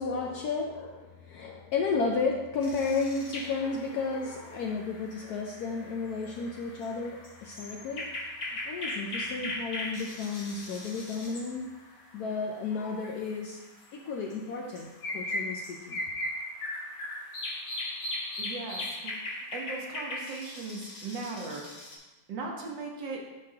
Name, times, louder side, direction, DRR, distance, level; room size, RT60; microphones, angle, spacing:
voice 1, 0.0-8.1 8.4-11.7 12.1-13.6 13.9-16.0, left 4 dB, 70° left, 0 dB, 0.9 m, -33 dB
sound 1, 2.6-12.3 12.7-12.8 13.2-22.0, left 1 dB, 55° left, 1.4 m, -38 dB
voice 2, 18.4-21.7 22.3-23.2, right 3 dB, 70° right, 0 dB, 1.6 m, -38 dB
10.5 x 3.7 x 2.8 m, 1.1 s
omnidirectional pair, 2.1 m